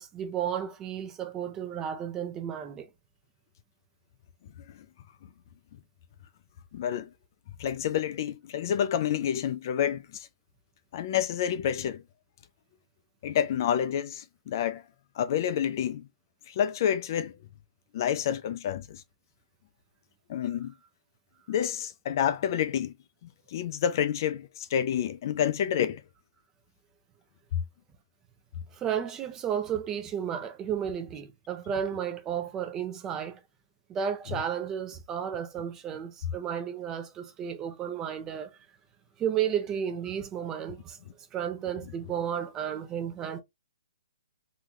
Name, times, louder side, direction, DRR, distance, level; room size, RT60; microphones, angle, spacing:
voice 1, 0.0-2.9 28.7-33.4 33.9-38.6 39.2-41.0 41.3-43.4, right 8 dB, 15° right, 0.5 m, -33 dB
voice 2, 6.7-7.1 7.6-10.3 10.9-12.0 13.2-14.8 15.2-16.0 16.5-17.3 17.9-19.0 20.3-20.7 21.5-22.9 23.5-26.0, left 9 dB, 40° left, 0.4 m, -28 dB
3.8 x 2.3 x 2.9 m
hypercardioid pair, 155°, 3 cm